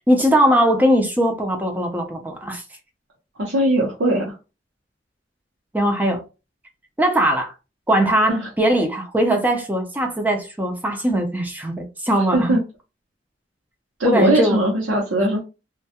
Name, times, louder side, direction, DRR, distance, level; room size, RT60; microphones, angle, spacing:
voice 1, 0.1-2.6 5.7-6.2 7.0-7.5 7.9-12.5 14.0-14.6, right 1 dB, 10° right, 0.4 m, -20 dB
voice 2, 3.4-4.3 8.3-8.5 12.2-12.6 14.0-15.4, right 1 dB, 85° right, 0.7 m, -20 dB
2.2 x 2.1 x 2.8 m
head